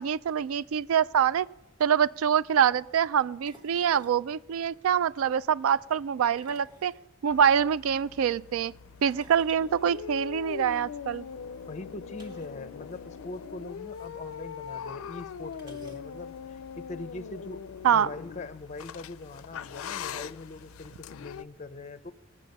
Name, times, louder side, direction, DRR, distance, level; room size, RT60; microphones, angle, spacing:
voice 1, 0.0-1.5 1.8-6.9 7.2-8.7 9.0-11.3 17.8-18.1, right 8 dB, 90° right, 0.3 m, -25 dB
sound 1, 1.4-1.6 3.5-4.2 6.2-7.6 9.0-10.7 12.1-12.7 12.9-13.0 13.3-13.5 14.5-14.6 15.5-16.4, right 1 dB, 20° right, 1.2 m, -55 dB
sound 2, 7.3-21.4, left 7 dB, 85° left, 0.4 m, -41 dB
voice 2, 11.7-17.6 17.9-22.1, left 2 dB, 35° left, 0.5 m, -42 dB
21.0 x 7.4 x 5.3 m
head